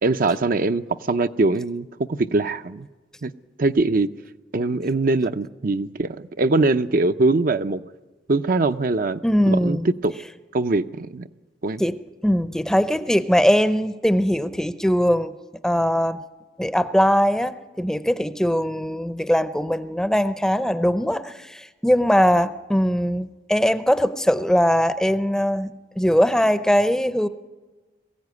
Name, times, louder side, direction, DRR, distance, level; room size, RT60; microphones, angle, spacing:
voice 1, 0.0-2.9 3.2-3.3 3.6-4.1 4.5-7.8 8.3-9.2 9.5-9.8 10.0-10.1 10.5-11.3 11.6-11.8, right 3 dB, 50° right, 0.6 m, -22 dB
voice 2, 9.2-9.9 11.8-15.4 15.6-16.2 16.6-27.3, equal, 5° left, 0.6 m, -21 dB
22.0 x 15.5 x 9.6 m
head